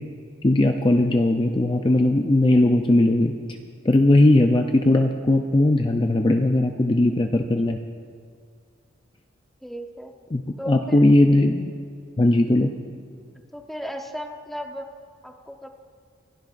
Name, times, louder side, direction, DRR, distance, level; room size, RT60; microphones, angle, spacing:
voice 1, 0.4-3.3 3.8-7.8 10.3-11.7 12.2-12.7, left 1 dB, 25° left, 4 dB, 0.5 m, -18 dB
voice 2, 9.6-10.1 10.6-11.0 13.5-14.9 15.2-15.7, equal, ahead, 3 dB, 0.8 m, -35 dB
27.0 x 12.0 x 2.5 m, 2.1 s
head